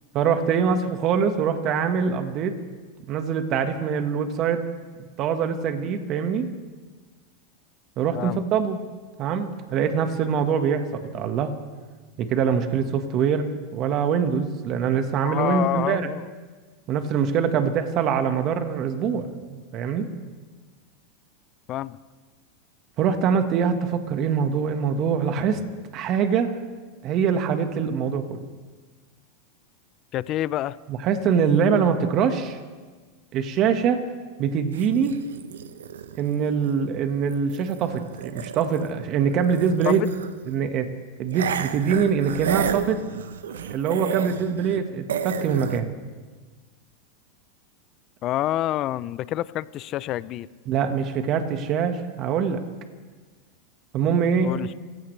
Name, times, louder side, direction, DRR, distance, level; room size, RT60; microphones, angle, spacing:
voice 1, 0.1-2.6 3.1-4.6 5.2-6.5 8.0-8.8 9.2-11.6 12.2-16.1 16.9-20.1 23.0-25.6 25.9-26.5 27.0-28.4 30.9-32.6 33.3-34.0 34.4-35.1 36.2-40.0 40.5-40.9 41.2-43.0 43.7-45.9 50.7-52.6 53.9-54.6, right 7 dB, 45° right, 7 dB, 1.6 m, -24 dB
voice 2, 15.2-16.3 21.7-22.0 30.1-30.8 39.8-40.1 48.2-50.5 54.4-54.7, left 13 dB, 45° left, 18 dB, 0.5 m, -27 dB
sound 1, 34.7-39.0 39.3-40.5 41.3-44.8 45.1-45.8, right 8 dB, 85° right, 0.9 m, -32 dB
25.5 x 16.0 x 3.4 m, 1.4 s
hypercardioid pair, 105°, 0 cm